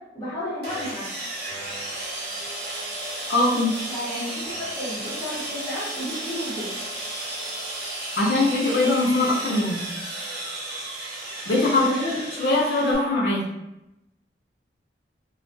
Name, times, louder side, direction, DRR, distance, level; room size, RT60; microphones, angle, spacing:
voice 1, 0.1-1.1 3.9-4.3 4.6-6.7 11.8-12.2, equal, 20° left, -10 dB, 1.1 m, -31 dB
Sawing, 0.6-12.9, right 1 dB, 65° right, 0.6 m, -33 dB
voice 2, 3.3-3.7 8.2-9.8 11.5-11.9 12.4-13.5, left 2 dB, 65° left, -3 dB, 0.6 m, -21 dB
2.3 x 2.3 x 2.6 m, 0.91 s
head